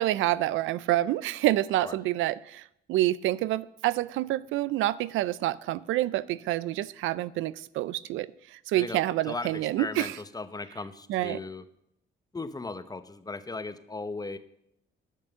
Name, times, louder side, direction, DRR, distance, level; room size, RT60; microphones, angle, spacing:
voice 1, 0.0-2.6 2.9-10.2 11.1-11.4, right 15 dB, 85° right, 0.4 m, -28 dB
voice 2, 8.7-11.6 12.3-14.4, left 3 dB, 20° left, 0.8 m, -37 dB
10.5 x 6.4 x 6.8 m
cardioid pair, 90°, 20 cm